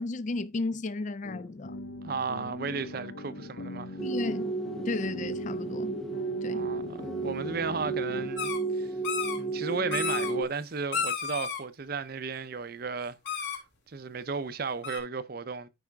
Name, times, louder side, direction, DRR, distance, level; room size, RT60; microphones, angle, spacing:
voice 1, 0.0-1.8 4.0-4.5 4.9-6.0 6.4-6.6, left 3 dB, 35° left, 0.4 m, -34 dB
sound 1, 1.2-8.3, left 2 dB, 85° left, 1.1 m, -42 dB
voice 2, 2.0-4.0 6.5-8.9 9.4-13.6 13.9-15.7, right 5 dB, 50° right, 0.6 m, -35 dB
sound 2, 4.0-10.4, right 3 dB, ahead, 0.7 m, -33 dB
sound 3, 8.4-8.6 9.0-9.4 9.9-10.3 10.9-11.6 13.3-13.6 14.8-15.0, left 6 dB, 65° left, 3.8 m, -31 dB
14.0 x 5.0 x 2.3 m
head